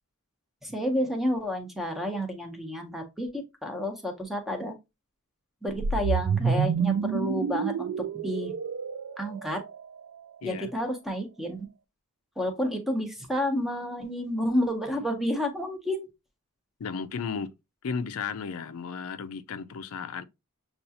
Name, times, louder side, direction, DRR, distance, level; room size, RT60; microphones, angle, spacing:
voice 1, 0.6-4.7 5.6-8.5 9.2-9.6 10.4-11.7 12.4-16.1, equal, ahead, 0.8 m, -30 dB
sound 1, 5.7-10.0, right 6 dB, 65° right, 0.3 m, -28 dB
voice 2, 16.8-17.5 17.8-20.2, left 5 dB, 70° left, 0.4 m, -34 dB
6.6 x 2.4 x 2.7 m
head